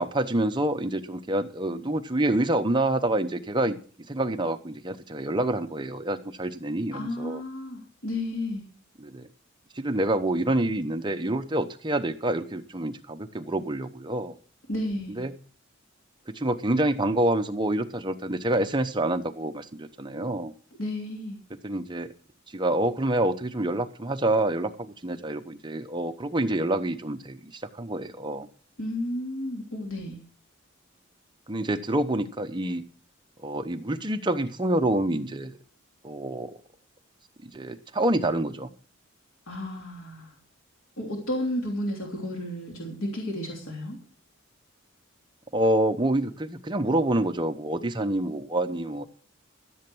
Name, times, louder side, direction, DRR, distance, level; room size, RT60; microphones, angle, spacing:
voice 1, 0.0-3.8 4.1-7.4 9.0-9.3 9.8-14.3 15.2-15.3 16.3-20.5 21.6-22.1 22.5-28.5 31.5-32.8 33.4-35.6 36.0-36.5 37.4-38.7 45.5-49.1, right 1 dB, 20° right, 7 dB, 0.8 m, -27 dB
voice 2, 6.9-8.6 14.7-15.2 20.8-21.4 28.8-30.2 39.5-40.3 41.0-44.0, left 1 dB, 80° left, 0 dB, 3.1 m, -32 dB
14.0 x 7.9 x 6.1 m, 0.43 s
head